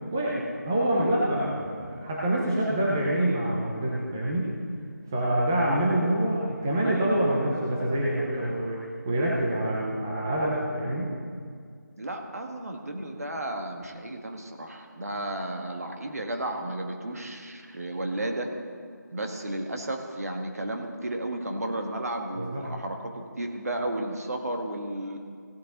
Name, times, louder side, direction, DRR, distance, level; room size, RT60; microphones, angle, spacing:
voice 1, 0.1-4.5 5.1-8.8 9.0-11.1 22.4-22.6, right 1 dB, 10° right, -5 dB, 0.6 m, -26 dB
voice 2, 12.0-18.5 19.1-25.2, right 1 dB, 55° right, 3 dB, 1.5 m, -33 dB
16.5 x 8.4 x 3.9 m, 2.1 s
figure-of-eight pair, 170°, 10 cm